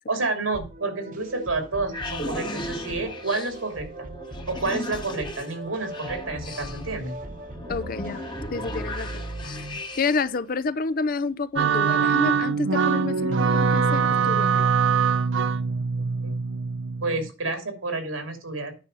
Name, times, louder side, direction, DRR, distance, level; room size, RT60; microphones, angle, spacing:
voice 1, 0.1-3.9 4.5-7.2 16.2-16.3 17.0-18.8, right 3 dB, 90° right, 2.8 m, -29 dB
sound 1, 0.5-10.6, right 2 dB, 40° right, 1.0 m, -39 dB
sound 2, 1.3-10.4, left 1 dB, 25° left, 1.2 m, -37 dB
voice 2, 7.7-8.2 8.5-9.2 9.5-9.6 10.0-14.7, left 4 dB, 45° left, 0.5 m, -29 dB
sound 3, 11.6-17.3, right 5 dB, 70° right, 0.6 m, -23 dB
9.6 x 6.0 x 5.5 m
head